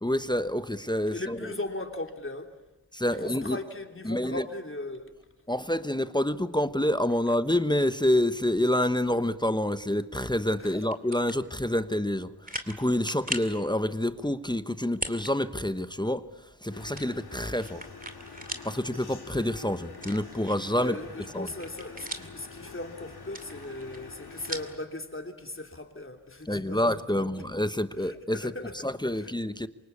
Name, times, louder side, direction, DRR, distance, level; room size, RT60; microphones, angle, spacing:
voice 1, 0.0-1.4 2.9-3.6 4.1-4.4 5.5-12.3 12.7-16.2 16.6-17.8 18.6-21.0 21.3-21.5 26.5-28.4 28.8-29.7, left 1 dB, 10° left, 1.0 m, -27 dB
voice 2, 1.1-2.6 3.1-5.2 10.6-10.8 16.9-17.1 20.8-27.5 28.0-28.9 29.1-29.3, left 2 dB, 35° left, 3.3 m, -38 dB
sound 1, 10.8-11.4 11.9-12.0 12.5-12.8 13.1-13.6 14.9-15.3 15.7-15.8 17.0-18.7 19.1-19.2 19.9-20.8 21.2-22.5 23.2-24.8, right 1 dB, 20° right, 2.5 m, -38 dB
sound 2, 16.7-24.8, left 4 dB, 80° left, 2.9 m, -46 dB
27.5 x 24.5 x 8.5 m
wide cardioid pair, 70°, 38 cm